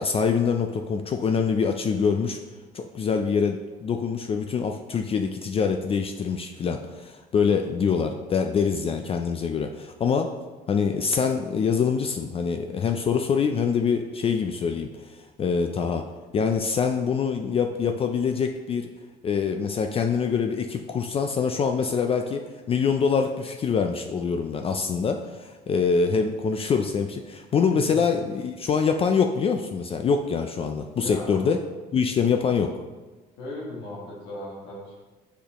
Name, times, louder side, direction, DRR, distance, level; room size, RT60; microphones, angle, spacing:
voice 1, 0.0-2.4 2.7-10.3 10.7-16.0 16.3-18.9 19.2-31.6 31.9-32.7, left 6 dB, 35° left, 5 dB, 0.3 m, -25 dB
voice 2, 30.9-31.4 33.4-35.0, left 1 dB, 90° left, -4 dB, 1.6 m, -37 dB
6.4 x 5.1 x 3.0 m, 1.3 s
cardioid pair, 110°, 17 cm